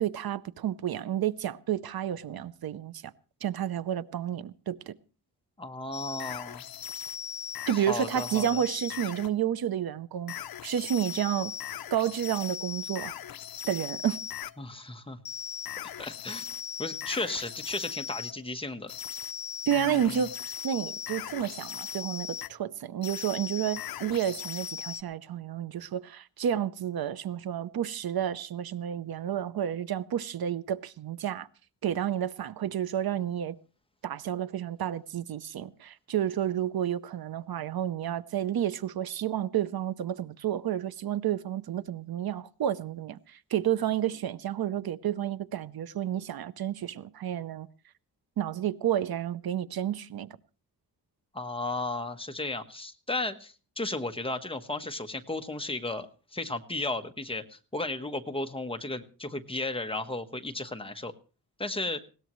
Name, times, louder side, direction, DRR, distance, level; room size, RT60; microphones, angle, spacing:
voice 1, 0.0-3.1 3.4-4.9 7.7-10.3 10.6-11.5 11.9-13.1 13.7-14.2 19.7-31.5 31.8-33.6 34.0-47.7 48.4-50.3, right 10 dB, 65° right, 0.7 m, -30 dB
voice 2, 5.6-6.6 7.7-8.6 14.6-15.2 16.0-16.4 16.8-18.9 19.7-20.2 51.3-61.1 61.6-62.0, left 2 dB, 15° left, 1.1 m, -34 dB
sound 1, 5.9-9.3 10.3-14.5 15.2-18.4 18.9-22.5 23.0-25.0, left 8 dB, 65° left, 0.7 m, -39 dB
20.0 x 17.5 x 3.1 m
wide cardioid pair, 130°, 39 cm